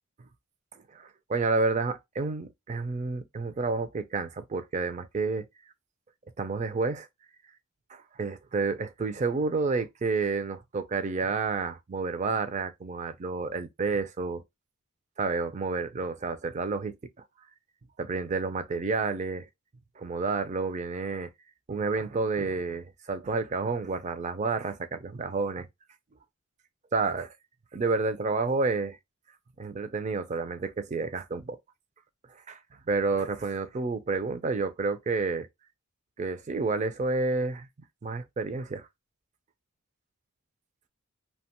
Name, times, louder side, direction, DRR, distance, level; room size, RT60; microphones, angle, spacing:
voice 1, 0.7-5.5 6.4-7.1 7.9-14.4 15.2-16.9 18.0-19.5 20.0-21.3 21.7-25.7 26.9-27.3 27.7-29.0 29.6-31.6 32.5-32.6 32.9-35.5 36.2-37.7 38.0-38.9, right 4 dB, 30° right, 0.4 m, -30 dB
2.8 x 2.2 x 2.8 m
head